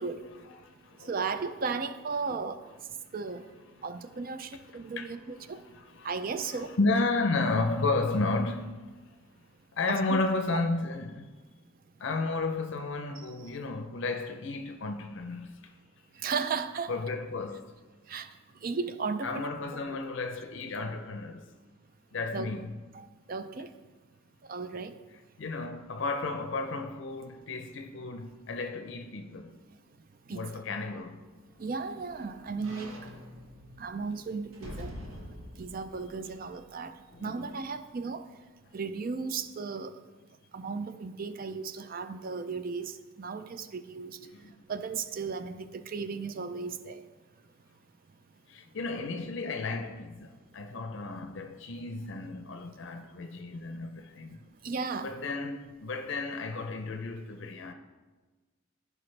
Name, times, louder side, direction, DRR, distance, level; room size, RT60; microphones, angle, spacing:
voice 1, 0.2-1.1 2.3-2.4 3.0-3.1 3.7-3.9 4.4-9.2 9.7-11.3 12.0-15.7 16.9-17.8 19.2-21.5 22.1-22.8 25.4-29.5 30.3-31.3 34.6-34.8 37.1-37.5 44.2-44.5 48.5-54.4 55.0-57.7, left 3 dB, 60° left, 0.5 m, -33 dB
voice 2, 1.0-2.6 3.1-3.5 3.8-5.6 6.0-6.7 9.9-10.0 10.5-10.6 13.2-13.3 16.2-16.9 18.1-18.3 18.6-19.5 22.3-22.5 22.9-23.7 24.5-25.0 30.3-30.6 31.6-33.0 33.8-35.0 35.6-36.9 37.2-38.3 38.7-39.9 40.5-44.2 44.7-47.0 54.6-55.1, right 4 dB, 45° right, 0.4 m, -35 dB
sound 1, 31.1-37.2 37.7-37.8, equal, 85° right, 1.1 m, -47 dB
15.0 x 5.0 x 3.2 m
head